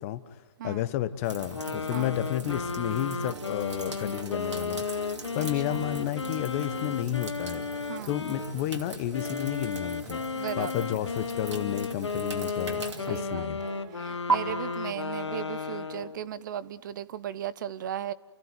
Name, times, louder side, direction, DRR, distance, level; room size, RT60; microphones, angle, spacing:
voice 1, 0.0-13.6, left 13 dB, 30° left, 0.9 m, -32 dB
sound 1, 1.2-14.3, right 4 dB, 85° right, 2.8 m, -39 dB
sound 2, 1.5-8.5 9.1-16.3, left 5 dB, 80° left, 1.2 m, -34 dB
Piano, 2.4-16.2, right 11 dB, 25° right, 1.1 m, -50 dB
voice 2, 5.4-5.8 7.9-8.1 10.3-10.8 13.1-18.1, right 10 dB, 45° right, 0.7 m, -37 dB
30.0 x 15.0 x 9.1 m
figure-of-eight pair, 135°, 14 cm